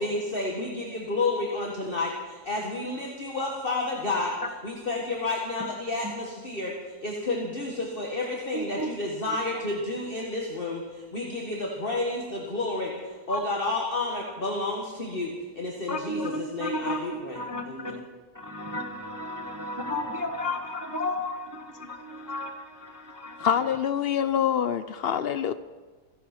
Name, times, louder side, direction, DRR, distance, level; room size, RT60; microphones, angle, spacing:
voice 1, 0.0-4.3 4.6-17.4 17.7-18.0, left 2 dB, 35° left, -1 dB, 1.8 m, -31 dB
voice 2, 8.5-8.9 9.2-9.4 13.3-13.4 15.9-18.0 18.3-23.5, left 1 dB, 15° right, 4 dB, 0.9 m, -33 dB
voice 3, 23.4-25.5, left 8 dB, 90° left, 12 dB, 0.5 m, -25 dB
27.0 x 11.0 x 4.4 m, 1.3 s
omnidirectional pair, 1.7 m